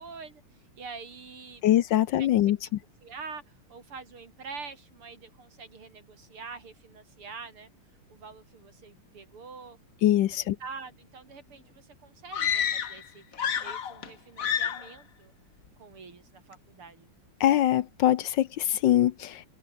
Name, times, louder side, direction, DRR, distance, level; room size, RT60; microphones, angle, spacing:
voice 1, 0.0-1.6 1.9-2.6 3.0-7.7 8.1-9.8 10.1-15.3 15.8-17.1, right 5 dB, 85° right, 4.6 m, -45 dB
voice 2, 1.6-2.6 10.0-10.6 17.4-19.5, left 12 dB, 70° left, 1.3 m, -23 dB
sound 1, 12.3-13.1 13.3-14.1 14.4-14.9, left 8 dB, 45° left, 1.3 m, -29 dB
omnidirectional pair, 2.4 m